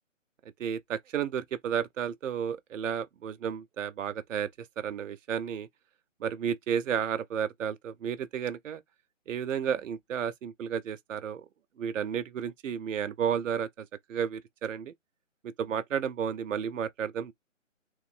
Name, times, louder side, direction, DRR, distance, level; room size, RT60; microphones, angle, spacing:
voice 1, 0.6-4.5 4.8-5.7 6.2-8.8 9.3-11.4 11.8-14.9 15.4-17.3, right 8 dB, 75° right, 0.5 m, -32 dB
3.0 x 2.2 x 3.6 m
hypercardioid pair, 165°, 39 cm